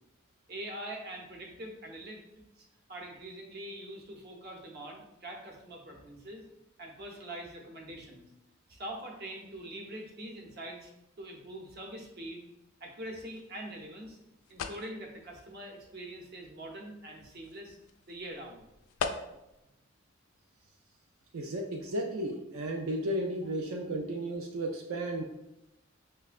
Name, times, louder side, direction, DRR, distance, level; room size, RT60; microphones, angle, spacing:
voice 1, 0.5-2.2 2.6-6.4 6.8-8.3 8.7-10.9 11.2-12.4 12.8-14.2 14.5-17.8 18.1-18.6, right 1 dB, 50° right, 0 dB, 0.7 m, -43 dB
sound 1, 13.2-19.6, left 5 dB, 75° left, 0.3 m, -43 dB
voice 2, 21.3-25.2, right 1 dB, 85° right, 1 dB, 0.4 m, -34 dB
5.5 x 2.1 x 2.4 m, 0.90 s
head